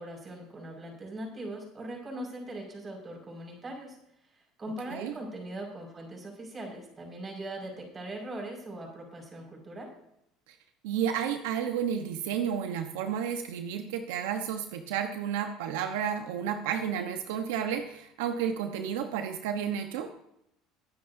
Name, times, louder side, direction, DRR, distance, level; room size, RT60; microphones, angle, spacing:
voice 1, 0.0-4.0 4.6-9.9, right 1 dB, 25° right, 1 dB, 5.6 m, -40 dB
voice 2, 10.8-20.1, right 8 dB, 90° right, 6 dB, 1.1 m, -31 dB
21.5 x 9.6 x 2.8 m, 0.77 s
supercardioid pair, 115°, 0 cm